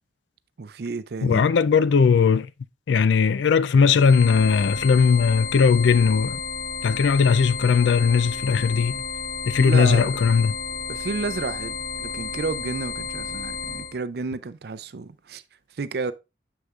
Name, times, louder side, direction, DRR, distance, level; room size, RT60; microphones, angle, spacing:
voice 1, 0.6-1.4 9.6-10.2 10.9-15.4 15.8-16.1, right 4 dB, 60° right, 0.4 m, -31 dB
voice 2, 1.2-2.5 2.9-6.4 6.8-9.0 9.5-10.5, left 5 dB, 85° left, 0.4 m, -18 dB
sound 1, 4.0-13.9, left 5 dB, 55° left, 1.4 m, -32 dB
7.1 x 6.4 x 2.4 m
head